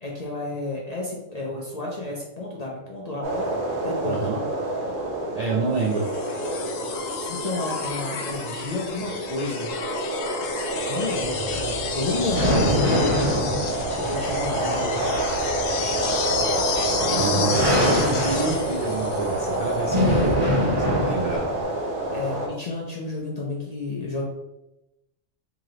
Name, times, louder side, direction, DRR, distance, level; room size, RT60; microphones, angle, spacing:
voice 1, 0.0-3.5 3.8-4.2 7.2-9.7 10.9-13.2 14.0-15.1 17.1-17.7 22.1-24.2, left 2 dB, 50° left, -3 dB, 0.5 m, -31 dB
sound 1, 3.2-22.5, right 2 dB, 50° right, 0.8 m, -28 dB
voice 2, 4.0-4.4 5.3-6.1 17.0-20.2 20.8-21.4, right 4 dB, 65° right, -2 dB, 0.4 m, -28 dB
sound 2, 5.9-19.9 21.4-21.5, left 6 dB, 90° left, 1.0 m, -32 dB
sound 3, 11.2-21.6, equal, 20° right, 1.0 m, -26 dB
3.0 x 2.9 x 3.8 m, 0.95 s
omnidirectional pair, 1.3 m